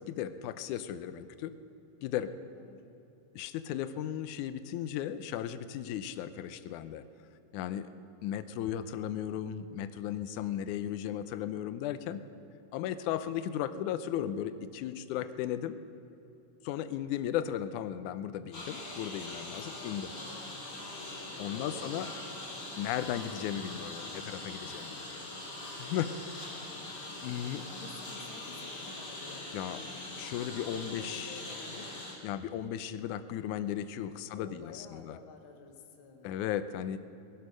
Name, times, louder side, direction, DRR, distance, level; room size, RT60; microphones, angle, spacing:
voice 1, 0.0-1.5 2.0-2.3 3.3-7.1 7.5-7.9 8.2-12.2 12.7-15.8 16.6-20.1 21.4-22.1 22.8-25.2 25.8-26.4 27.2-27.6 29.5-29.8 30.2-31.4 32.2-35.2 36.2-37.0, left 10 dB, 75° left, 12 dB, 2.0 m, -36 dB
voice 2, 2.6-2.9 18.7-18.8 19.8-20.0 21.5-22.3 26.6-27.0 27.7-29.9 30.6-31.9 34.4-36.5, left 4 dB, 50° left, 3 dB, 1.8 m, -51 dB
Engine, 18.5-32.1, left 2 dB, 30° left, 3.9 m, -42 dB
19.0 x 11.5 x 6.6 m, 2.9 s
omnidirectional pair, 3.9 m